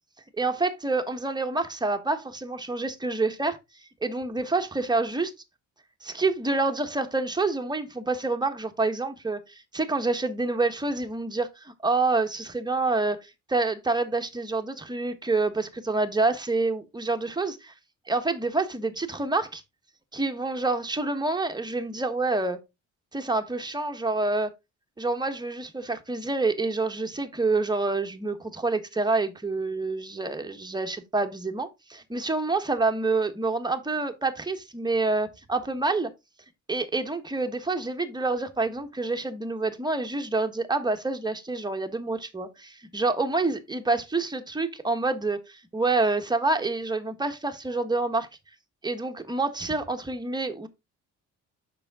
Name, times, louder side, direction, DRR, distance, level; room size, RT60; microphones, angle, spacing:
voice 1, 0.4-3.6 4.0-5.3 6.0-13.2 13.5-17.7 18.1-19.6 20.1-22.6 23.1-24.5 25.0-36.1 36.7-48.3 48.8-50.7, right 3 dB, 15° right, 1.4 m, -27 dB
6.9 x 5.8 x 3.7 m
cardioid pair, 90°, 30 cm